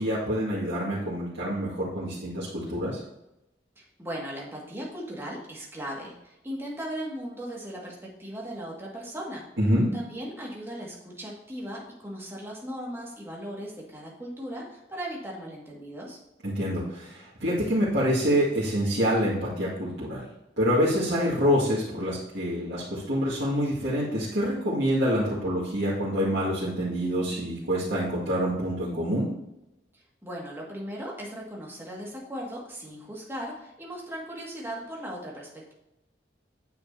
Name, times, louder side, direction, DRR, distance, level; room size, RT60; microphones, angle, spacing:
voice 1, 0.0-3.0 9.6-9.9 16.4-20.2 20.6-29.3, equal, 85° right, -10 dB, 2.0 m, -26 dB
voice 2, 3.8-9.5 9.9-16.2 30.2-35.7, equal, 15° right, -3 dB, 1.9 m, -38 dB
9.3 x 7.0 x 2.8 m, 0.88 s
head